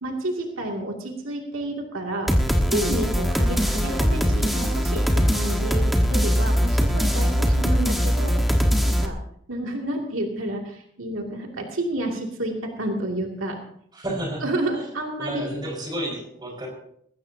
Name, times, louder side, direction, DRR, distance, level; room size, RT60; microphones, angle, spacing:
voice 1, 0.0-9.2 9.5-13.6 14.4-15.4, right 1 dB, 85° right, 1 dB, 2.5 m, -30 dB
sound 1, 2.3-9.1, equal, ahead, 1.4 m, -21 dB
voice 2, 13.9-14.5 14.7-14.9 15.2-16.7, right 1 dB, 20° right, -1 dB, 4.9 m, -31 dB
20.5 x 16.0 x 2.8 m, 0.68 s
head